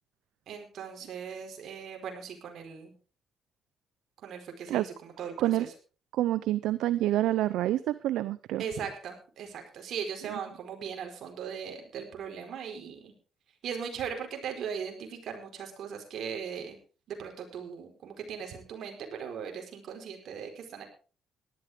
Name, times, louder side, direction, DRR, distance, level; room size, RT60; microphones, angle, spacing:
voice 1, 0.5-2.9 4.2-5.7 8.6-13.1 13.6-16.8 17.1-20.8, right 7 dB, 70° right, 3 dB, 4.7 m, -39 dB
voice 2, 6.1-8.6, right 14 dB, 85° right, 16 dB, 0.6 m, -27 dB
18.0 x 12.5 x 3.7 m, 0.36 s
cardioid pair, 90°, 0 cm